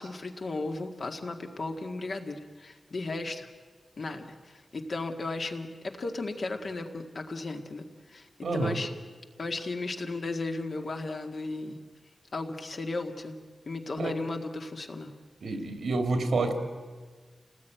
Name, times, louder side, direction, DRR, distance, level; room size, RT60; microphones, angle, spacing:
voice 1, 0.0-3.5 4.0-8.9 9.4-11.8 12.3-13.4 13.7-15.1, left 3 dB, 50° left, 4 dB, 1.9 m, -35 dB
voice 2, 8.4-8.8 14.0-14.1 15.4-16.5, right 3 dB, 85° right, 6 dB, 2.7 m, -28 dB
28.0 x 19.0 x 9.2 m, 1.4 s
wide cardioid pair, 160°, 0 cm